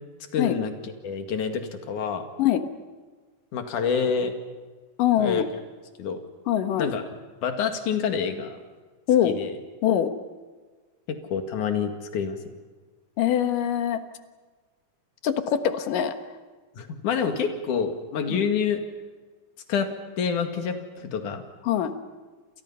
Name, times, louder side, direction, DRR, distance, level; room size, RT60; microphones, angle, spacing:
voice 1, 0.3-2.3 3.5-4.3 5.2-5.5 6.0-6.2 6.8-7.0 7.4-8.6 9.2-9.6 11.1-12.4 16.8-18.8 19.7-21.4, left 6 dB, 70° left, 6 dB, 3.5 m, -27 dB
voice 2, 5.0-5.4 6.5-6.9 9.1-9.3 9.8-10.1 13.2-14.0 15.2-16.1 18.3-18.5 21.7-21.9, left 10 dB, 85° left, 8 dB, 3.1 m, -23 dB
29.0 x 28.0 x 5.7 m, 1.4 s
omnidirectional pair, 3.7 m